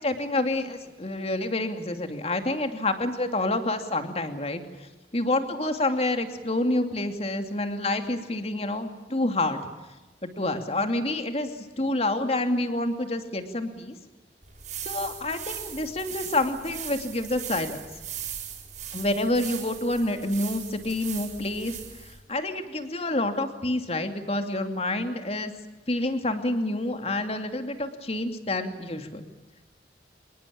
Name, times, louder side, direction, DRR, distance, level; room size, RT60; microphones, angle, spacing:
voice 1, 0.0-4.6 5.1-9.6 10.4-11.5 11.8-13.9 14.8-17.8 18.9-25.5 25.9-29.3, left 2 dB, 35° left, 7 dB, 2.7 m, -28 dB
sound 1, 14.4-22.2, right 9 dB, 45° right, 6.4 m, -39 dB
26.5 x 21.5 x 8.7 m, 1.1 s
head